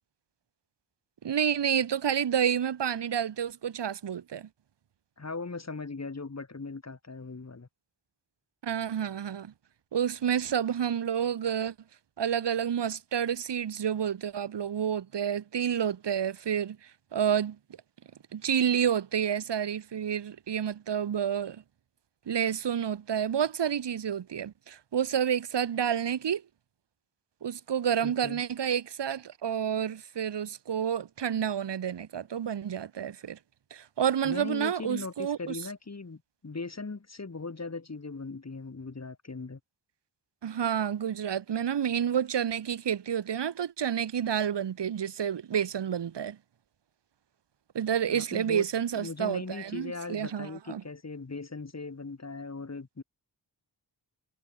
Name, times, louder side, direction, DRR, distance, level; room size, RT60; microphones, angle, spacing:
voice 1, 1.2-4.5 8.6-9.5 9.9-11.7 12.2-16.8 17.1-17.6 18.3-21.6 22.3-26.4 27.4-33.4 33.7-35.6 40.4-46.4 47.7-50.8, right 8 dB, 75° right, 0.9 m, -29 dB
voice 2, 5.2-7.7 28.0-28.4 34.2-39.6 48.1-48.7 48.9-53.0, left 3 dB, 40° left, 1.8 m, -39 dB
wide cardioid pair, 65°, 42 cm